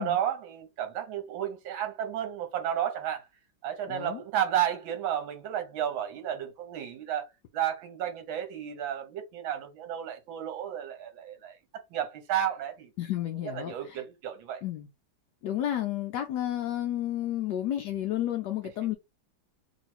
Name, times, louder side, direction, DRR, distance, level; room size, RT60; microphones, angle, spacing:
voice 1, 0.0-3.2 3.6-7.2 7.5-11.6 11.9-12.9 13.4-14.6, right 10 dB, 75° right, 1.7 m, -32 dB
voice 2, 3.9-4.2 13.0-14.0 14.6-14.9 15.4-18.9, left 12 dB, 75° left, 1.0 m, -31 dB
3.2 x 3.1 x 4.2 m
omnidirectional pair, 2.2 m